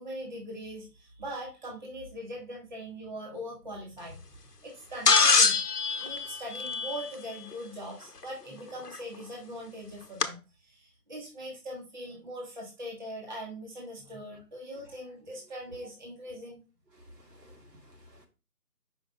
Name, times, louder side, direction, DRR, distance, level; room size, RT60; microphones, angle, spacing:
voice 1, 0.0-5.6 6.0-16.6, equal, 30° right, 1.3 m, -41 dB
sound 1, 5.1-7.4 8.9-9.0 10.2-10.3, left 4 dB, 70° left, 1.0 m, -24 dB
voice 2, 16.9-18.3, equal, 75° right, 2.3 m, -54 dB
5.9 x 5.5 x 3.8 m
figure-of-eight pair, 160°, 49 cm